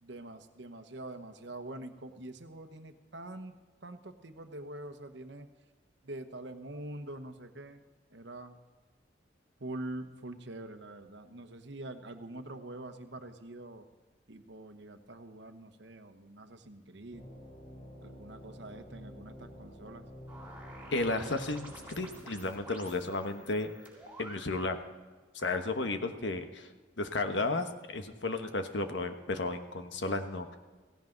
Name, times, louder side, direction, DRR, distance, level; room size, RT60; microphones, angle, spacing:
voice 1, 0.0-3.5 3.8-5.5 6.0-7.8 8.1-8.6 9.6-13.9 14.3-17.3 18.0-20.1, right 1 dB, 70° right, 8 dB, 1.1 m, -45 dB
sound 1, 17.1-22.2, equal, 35° left, 3.8 m, -49 dB
sound 2, 20.3-24.9, right 1 dB, 10° right, 3.7 m, -50 dB
voice 2, 20.9-23.7 24.2-24.8 25.3-26.7 27.0-30.6, left 2 dB, 70° left, 7 dB, 1.3 m, -33 dB
17.0 x 16.5 x 3.9 m, 1.3 s
head